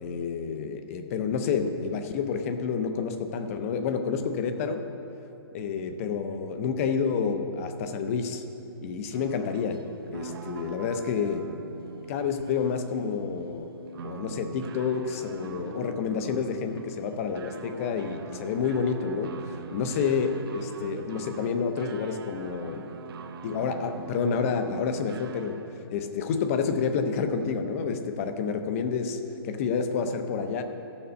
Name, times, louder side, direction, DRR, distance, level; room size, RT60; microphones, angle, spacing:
voice 1, 0.0-4.9 5.5-8.4 8.8-9.8 10.1-11.6 12.1-13.7 14.0-22.9 23.4-25.6 25.9-30.6, left 6 dB, 35° left, 8 dB, 0.7 m, -29 dB
sound 1, 9.1-25.9, right 5 dB, 65° right, 0.7 m, -43 dB
13.5 x 7.2 x 5.3 m, 2.8 s
hypercardioid pair, 160°, 13 cm